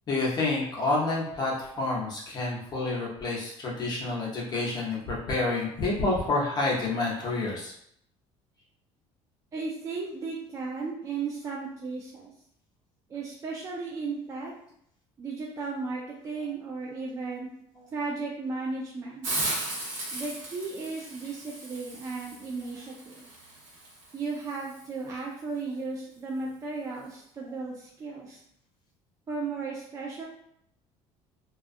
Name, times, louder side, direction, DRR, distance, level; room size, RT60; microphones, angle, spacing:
voice 1, 0.1-7.7, left 2 dB, 35° left, -4 dB, 0.8 m, -28 dB
voice 2, 9.5-12.3 13.1-14.5 15.2-17.5 17.9-19.3 20.1-23.3 24.1-28.4 29.3-30.2, right 4 dB, 25° right, -3 dB, 0.4 m, -35 dB
Hiss, 19.2-24.9, right 2 dB, 80° right, 1.0 m, -37 dB
2.3 x 2.3 x 2.5 m, 0.71 s
cardioid pair, 125°, 12 cm